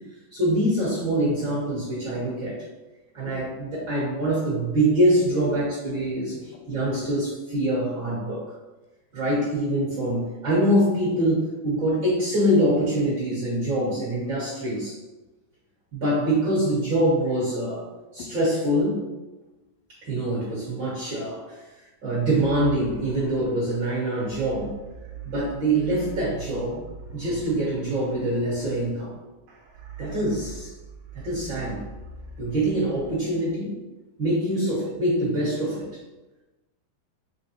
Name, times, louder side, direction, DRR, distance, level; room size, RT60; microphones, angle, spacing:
voice 1, 0.3-2.6 3.1-6.3 6.7-8.4 9.1-15.0 15.9-17.8 18.1-19.1 19.9-21.6 22.0-24.8 25.2-26.8 27.1-29.2 30.0-30.7 31.1-31.8 32.4-33.8 34.2-36.0, right 1 dB, 50° right, -8 dB, 1.4 m, -24 dB
voice 2, 6.3-7.1 18.2-18.3 34.5-34.8, left 6 dB, 90° left, 3 dB, 2.3 m, -43 dB
sound 1, 22.2-33.2, right 4 dB, 80° right, 1.5 m, -42 dB
6.3 x 2.2 x 2.8 m, 1.1 s
omnidirectional pair, 3.8 m